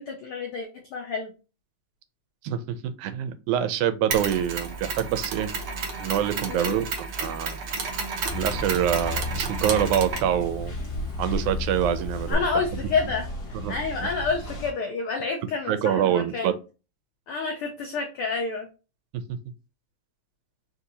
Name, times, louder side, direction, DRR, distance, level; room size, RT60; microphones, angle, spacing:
voice 1, 0.0-1.3 6.5-6.8 12.3-13.3 13.7-16.6 17.3-18.7, left 4 dB, 85° left, 2 dB, 1.2 m, -29 dB
voice 2, 2.4-5.5 6.0-7.6 8.3-10.8 11.2-12.4 13.6-13.8 15.7-16.5 19.1-19.4, right 10 dB, 85° right, 12 dB, 2.0 m, -26 dB
Mechanisms, 4.1-12.3, right 5 dB, 65° right, 1.3 m, -32 dB
sound 1, 8.2-14.7, left 2 dB, 60° left, 1.0 m, -33 dB
4.6 x 2.7 x 3.9 m, 0.32 s
omnidirectional pair, 3.4 m